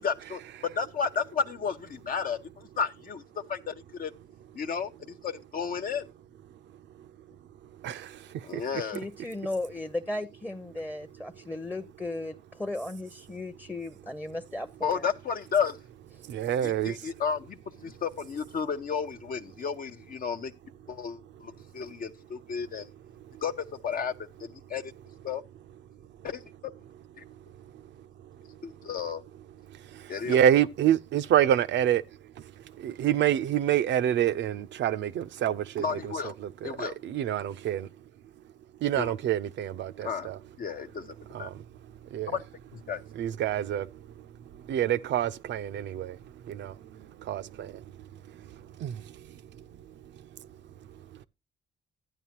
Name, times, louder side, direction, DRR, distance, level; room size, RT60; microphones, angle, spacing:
voice 1, 0.0-3.2 3.5-4.1 4.6-4.9 5.2-6.0 8.4-9.0 14.8-15.8 16.6-17.6 17.8-20.5 20.9-22.9 23.4-24.1 24.4-24.9 25.2-25.4 26.2-26.4 28.6-29.2 30.1-30.4 35.8-36.3 36.6-36.9 38.9-39.1 40.0-40.3 40.6-41.5 42.3-42.4 42.9-43.0, left 6 dB, 50° left, 0.6 m, -32 dB
voice 2, 7.8-8.2 8.5-8.6 16.3-17.0 29.9-32.0 32.8-36.1 36.4-37.9 38.8-40.4 41.3-41.6 42.1-42.4 43.2-43.9 44.7-46.2 46.5-46.7 47.2-47.8 48.8-49.0, right 10 dB, 70° right, 0.5 m, -27 dB
voice 3, 8.8-15.0, left 2 dB, 10° left, 0.7 m, -36 dB
12.5 x 9.0 x 2.9 m
cardioid pair, 85°, 19 cm